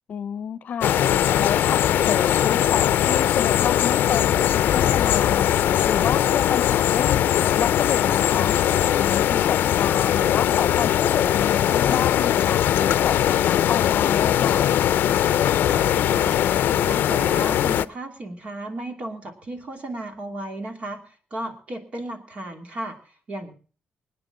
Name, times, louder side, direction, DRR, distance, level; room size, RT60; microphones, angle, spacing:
voice 1, 0.1-0.9 1.4-5.5 5.8-7.2 7.6-8.5 9.0-14.6, left 8 dB, 55° left, 0.8 m, -29 dB
sound 1, 0.8-17.8, left 11 dB, 90° left, 0.6 m, -20 dB
voice 2, 15.7-16.4 16.8-23.5, right 1 dB, 40° right, 2.7 m, -34 dB
24.0 x 9.9 x 3.8 m
wide cardioid pair, 175°, 3 cm